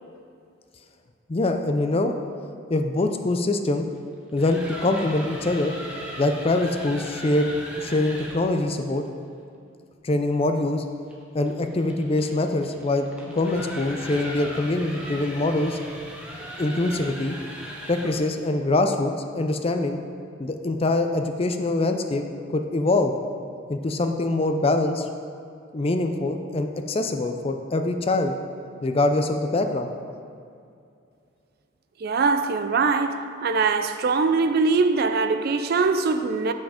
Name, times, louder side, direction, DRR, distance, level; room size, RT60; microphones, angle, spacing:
voice 1, 1.3-2.1 2.7-3.9 4.3-5.7 6.2-7.5 7.7-9.0 10.0-10.8 11.3-15.8 16.6-17.3 17.9-20.0 20.4-23.1 23.7-25.1 25.7-28.3 28.8-29.9, left 2 dB, 30° left, 0.4 m, -24 dB
sound 1, 4.2-8.5 11.1-18.3, equal, 5° right, 0.9 m, -38 dB
voice 2, 32.0-36.5, right 4 dB, 50° right, 0.4 m, -22 dB
7.5 x 5.9 x 5.0 m
head